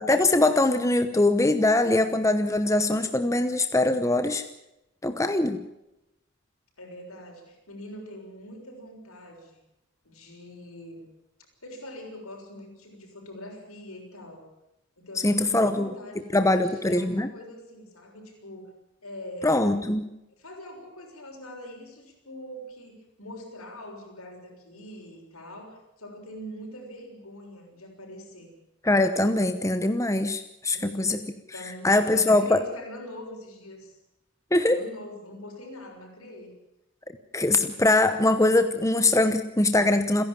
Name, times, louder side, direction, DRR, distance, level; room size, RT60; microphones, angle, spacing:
voice 1, 0.1-4.4 5.0-5.6 15.2-15.9 16.3-17.3 19.4-20.0 28.8-31.2 31.8-32.6 34.5-34.8 37.3-40.2, left 2 dB, 15° left, 9 dB, 0.9 m, -22 dB
voice 2, 6.8-9.6 10.0-11.1 11.6-14.5 15.0-19.7 20.4-28.5 30.7-34.0 34.6-36.5, left 1 dB, 80° left, 2 dB, 6.6 m, -43 dB
29.0 x 11.0 x 9.0 m, 0.87 s
head